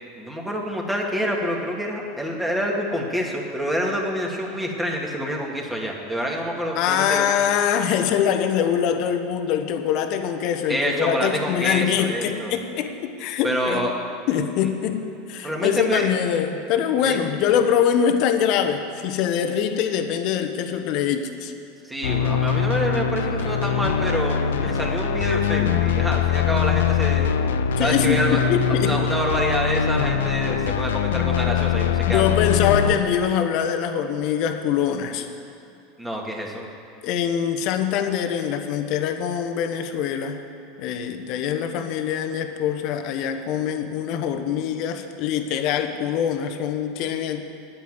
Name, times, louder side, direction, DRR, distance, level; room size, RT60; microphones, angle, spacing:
voice 1, 0.2-7.3 10.7-12.6 13.4-13.9 15.4-16.0 17.0-17.2 21.8-27.3 27.8-28.4 28.7-32.5 36.0-36.7, equal, 10° right, -1 dB, 2.3 m, -27 dB
voice 2, 6.8-13.8 14.3-15.0 15.3-21.5 24.6-24.8 27.8-29.0 32.0-35.3 37.0-40.4 40.8-47.5, left 8 dB, 55° left, 7 dB, 1.1 m, -23 dB
sound 1, 22.0-32.9, left 8 dB, 75° left, 0.5 m, -22 dB
9.7 x 8.5 x 9.0 m, 2.7 s
hypercardioid pair, 85°, 0 cm